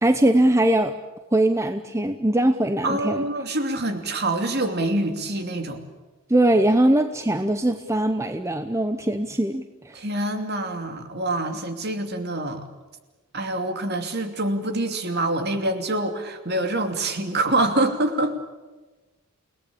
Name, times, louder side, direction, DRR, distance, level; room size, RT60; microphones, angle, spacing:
voice 1, 0.0-0.9 1.3-3.2 6.3-10.0, right 1 dB, 15° right, 8 dB, 0.8 m, -21 dB
voice 2, 2.8-5.8 9.9-12.7 13.3-18.3, right 2 dB, 50° right, 6 dB, 2.7 m, -25 dB
29.5 x 18.5 x 8.6 m, 1.2 s
head